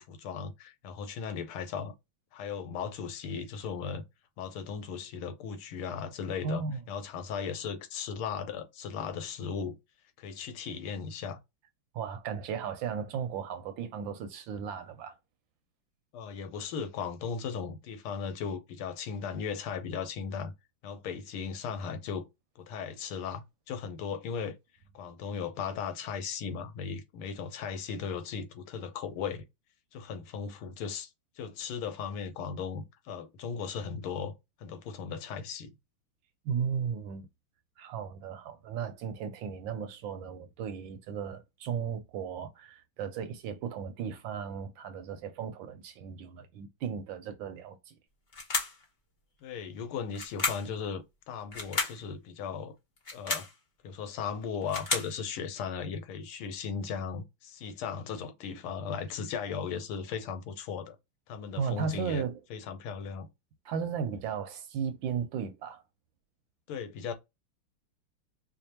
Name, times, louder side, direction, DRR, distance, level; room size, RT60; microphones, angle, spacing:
voice 1, 0.0-1.9 2.3-4.0 4.4-6.6 6.9-9.8 10.2-11.4 16.1-20.5 20.8-22.2 22.6-24.5 24.9-29.4 29.9-31.1 31.4-34.3 34.6-35.7 49.4-52.7 53.1-53.5 53.8-61.0 61.3-62.2 62.5-63.3 66.7-67.1, left 6 dB, 85° left, 1.6 m, -37 dB
voice 2, 6.4-6.8 11.9-15.1 36.4-37.3 37.8-47.9 61.5-62.4 63.6-65.8, right 6 dB, 75° right, 1.2 m, -35 dB
sound 1, 48.3-48.8 50.1-50.7 51.5-52.0 53.0-53.5 54.4-55.1, left 3 dB, 40° left, 0.7 m, -32 dB
5.1 x 2.2 x 2.8 m
omnidirectional pair, 2.3 m